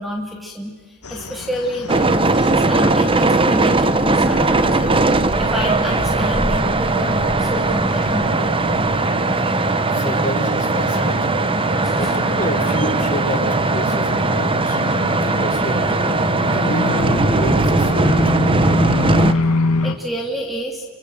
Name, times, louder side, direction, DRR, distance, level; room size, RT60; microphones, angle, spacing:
voice 1, 0.0-4.9 5.4-8.2 11.8-12.2 19.8-20.9, equal, ahead, 0 dB, 2.9 m, -28 dB
sound 1, 1.0-19.9, left 2 dB, 90° left, 2.1 m, -27 dB
sound 2, 1.9-19.3, right 2 dB, 25° right, 1.0 m, -19 dB
sound 3, 3.9-9.0, equal, 70° left, 3.1 m, -33 dB
voice 2, 9.9-11.4 12.0-14.8 15.2-15.8 16.5-18.4, left 1 dB, 35° left, 3 dB, 4.9 m, -29 dB
29.5 x 24.5 x 7.9 m, 1.2 s
head